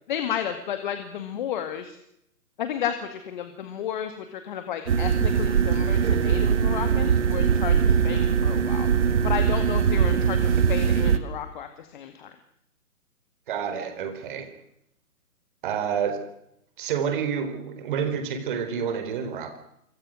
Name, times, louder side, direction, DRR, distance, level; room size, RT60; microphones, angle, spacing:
voice 1, 0.1-2.0 2.6-8.9 9.2-12.3, left 9 dB, 30° left, 8 dB, 2.0 m, -32 dB
sound 1, 4.9-11.2, right 7 dB, 45° right, 2.1 m, -21 dB
voice 2, 13.5-14.5 15.6-16.2 16.8-19.6, right 7 dB, 30° right, 8 dB, 4.2 m, -28 dB
26.5 x 24.0 x 6.4 m, 0.78 s
figure-of-eight pair, 145°, 47 cm